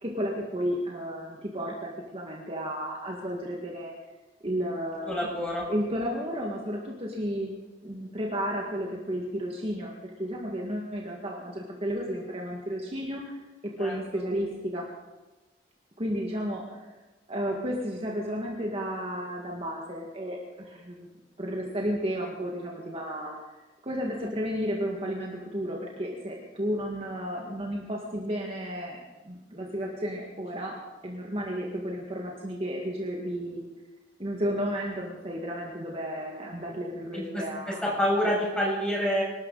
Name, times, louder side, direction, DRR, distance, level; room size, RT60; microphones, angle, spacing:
voice 1, 0.0-3.9 4.4-5.3 5.7-7.5 7.8-13.4 13.8-14.9 16.0-16.8 17.3-21.1 21.4-23.4 23.8-29.0 29.2-30.8 31.0-33.6 34.2-37.8 38.2-38.4, equal, 35° right, -2 dB, 2.0 m, -32 dB
voice 2, 5.1-5.6 13.8-13.9 37.1-39.2, equal, 5° left, -5 dB, 7.6 m, -27 dB
25.5 x 13.0 x 4.1 m, 1.1 s
head